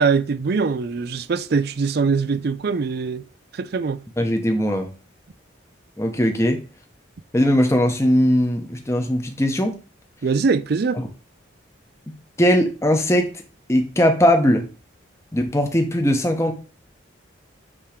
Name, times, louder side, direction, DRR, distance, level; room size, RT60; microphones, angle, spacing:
voice 1, 0.0-3.2 3.5-4.0 10.2-11.0, right 5 dB, 50° right, 0.4 m, -22 dB
voice 2, 4.2-4.9 6.0-6.6 7.3-9.8 11.0-11.1 12.4-13.3 13.7-14.6 15.3-16.5, equal, 15° left, 0.9 m, -19 dB
8.7 x 3.0 x 5.0 m
head